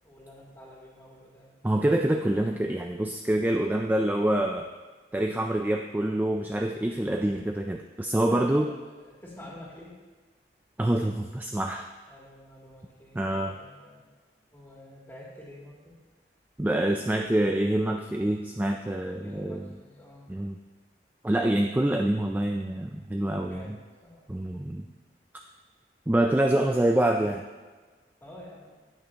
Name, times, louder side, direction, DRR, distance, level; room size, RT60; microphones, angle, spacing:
voice 1, 0.0-1.5 8.3-8.7 9.0-10.0 12.1-14.0 14.5-15.9 16.9-17.1 19.2-20.3 23.4-24.2 26.6-27.2 28.2-28.7, left 1 dB, 15° left, -6 dB, 2.4 m, -48 dB
voice 2, 1.6-4.7 5.1-8.7 10.8-11.9 13.1-13.5 16.6-19.7 20.3-20.6 21.2-23.8 24.3-24.9 26.1-27.4, right 1 dB, 10° right, 3 dB, 0.3 m, -26 dB
18.0 x 6.2 x 2.8 m, 1.4 s
head